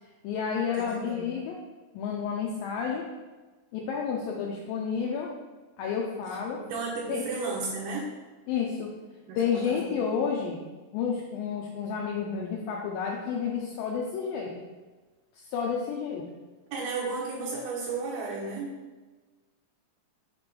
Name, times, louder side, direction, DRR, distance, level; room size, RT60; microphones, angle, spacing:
voice 1, 0.2-1.6 1.9-3.1 3.7-5.3 5.8-6.6 7.1-7.2 8.5-8.9 9.4-10.6 10.9-14.5 15.3-16.2, left 6 dB, 90° left, -1 dB, 2.0 m, -30 dB
voice 2, 0.8-1.4 6.6-8.1 9.3-10.0 16.7-18.8, right 3 dB, 75° right, -5 dB, 2.7 m, -34 dB
6.8 x 3.2 x 5.1 m, 1.3 s
omnidirectional pair, 4.7 m